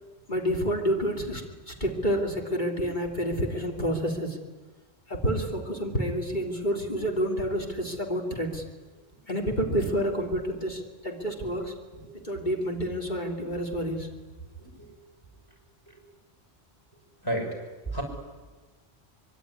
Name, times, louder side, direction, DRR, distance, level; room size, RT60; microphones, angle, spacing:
voice 1, 0.3-4.4 5.1-8.6 9.3-11.8 12.2-14.1, equal, 45° left, 1 dB, 3.2 m, -29 dB
voice 2, 14.6-14.9 17.2-17.5 17.9-18.0, right 1 dB, 20° left, 2 dB, 6.9 m, -31 dB
25.0 x 22.5 x 9.9 m, 1.3 s
omnidirectional pair, 1.1 m